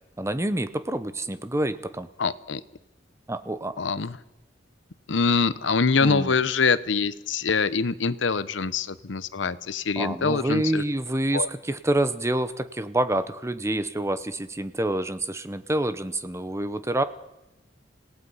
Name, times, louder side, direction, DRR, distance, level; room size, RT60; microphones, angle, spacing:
voice 1, 0.2-2.1 3.3-3.8 6.0-6.3 10.0-17.0, right 1 dB, 15° right, 12 dB, 0.8 m, -27 dB
voice 2, 2.2-2.6 3.8-4.2 5.1-10.8 11.3-11.5, left 5 dB, 75° left, 15 dB, 0.8 m, -24 dB
26.5 x 17.5 x 5.6 m, 0.92 s
head